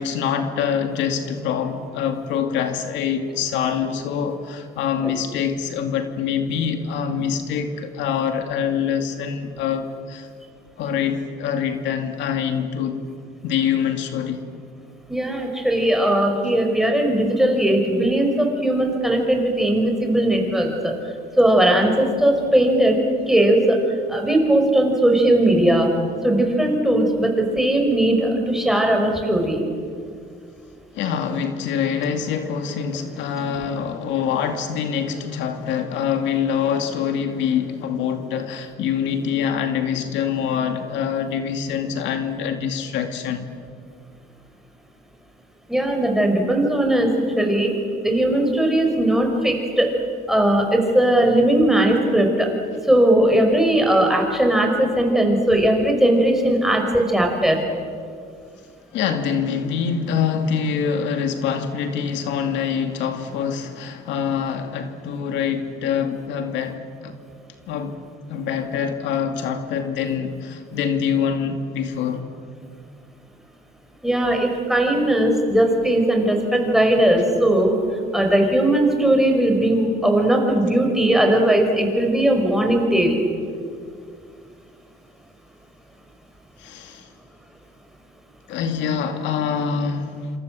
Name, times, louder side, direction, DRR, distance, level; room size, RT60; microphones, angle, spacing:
voice 1, 0.0-10.3 10.8-13.0 13.4-14.4 30.9-43.5 58.9-67.2 67.7-68.0 68.3-72.3 86.6-87.1 88.5-90.3, left 7 dB, 85° left, 2.4 m, -25 dB
voice 2, 15.1-20.9 21.4-23.0 23.3-23.8 24.1-25.9 26.2-29.6 45.7-47.7 48.0-49.9 50.3-52.5 52.8-57.6 74.0-77.7 78.1-83.2, right 1 dB, ahead, 5.6 m, -18 dB
27.5 x 27.0 x 7.8 m
cardioid pair, 125°, 19 cm